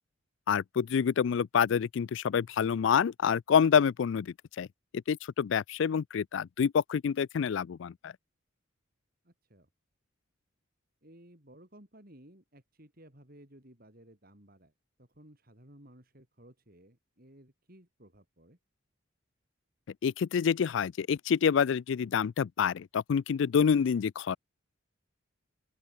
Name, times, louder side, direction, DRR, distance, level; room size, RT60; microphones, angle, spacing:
voice 1, 0.5-4.7 5.1-8.1 20.0-24.4, left 7 dB, 60° left, 0.3 m, -27 dB
voice 2, 9.2-9.7 11.0-14.7 15.0-18.6, right 1 dB, 45° right, 4.5 m, -57 dB
open air
head